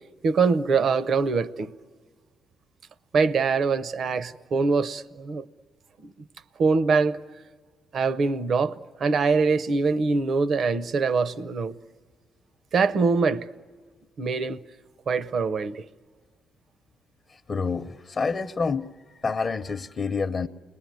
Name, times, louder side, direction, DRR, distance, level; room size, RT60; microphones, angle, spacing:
voice 1, 0.2-1.7 3.1-5.4 6.0-6.1 6.6-7.2 7.9-8.7 9.0-11.8 12.7-13.5 14.2-14.6 15.1-15.8, right 4 dB, 55° right, 0.8 m, -23 dB
voice 2, 17.5-18.9 19.2-20.5, left 4 dB, 40° left, 0.7 m, -27 dB
30.0 x 20.5 x 9.3 m
cardioid pair, 90°, 0 cm